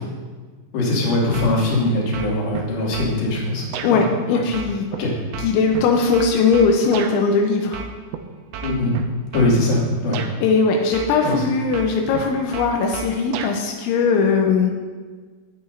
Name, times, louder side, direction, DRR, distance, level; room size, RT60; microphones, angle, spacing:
voice 1, 0.7-3.7 3.9-4.1 4.3-4.4 5.0-5.1 8.6-8.9 9.3-10.2 11.2-11.4, left 2 dB, 55° left, -5 dB, 4.1 m, -21 dB
sound 1, 1.3-1.8 2.1-3.1 3.7-3.9 4.5-7.2 7.7-8.2 8.5-9.5 10.1-10.3 10.9-11.4 11.7-13.6, right 7 dB, 85° right, 2.4 m, -31 dB
voice 2, 3.8-4.9 5.4-7.8 10.4-14.7, left 4 dB, 85° left, 2 dB, 3.2 m, -19 dB
20.5 x 8.9 x 2.7 m, 1.5 s
omnidirectional pair, 5.4 m